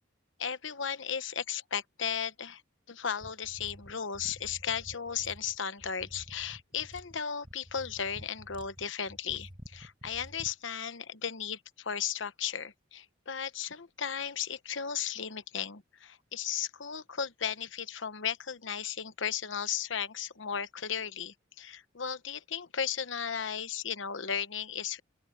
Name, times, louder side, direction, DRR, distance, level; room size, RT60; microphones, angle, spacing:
voice 1, 0.4-2.6 2.9-25.0, left 7 dB, 70° left, 1.0 m, -35 dB
sound 1, 3.2-10.6, equal, 25° right, 5.2 m, -50 dB
open air
head